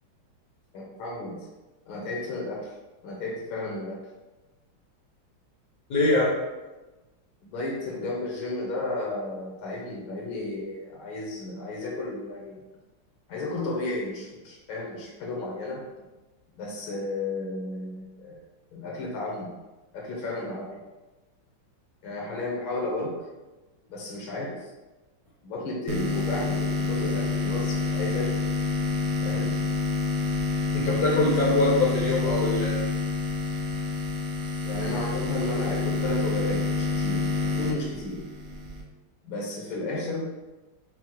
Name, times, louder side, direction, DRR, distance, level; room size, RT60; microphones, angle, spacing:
voice 1, 0.7-1.5 1.9-2.7 3.0-4.0 7.4-12.6 13.3-15.9 16.5-18.4 18.7-19.5 19.9-20.8 22.0-23.2 23.9-24.7 25.4-28.3 29.2-29.6 34.6-38.2 39.2-40.3, left 2 dB, 80° left, -2 dB, 1.5 m, -33 dB
voice 2, 5.9-6.3 30.7-32.8, left 2 dB, 65° left, -4 dB, 1.0 m, -23 dB
sound 1, 25.9-38.8, left 4 dB, 75° right, 1.2 m, -28 dB
6.0 x 2.0 x 2.9 m, 1.1 s
omnidirectional pair, 2.2 m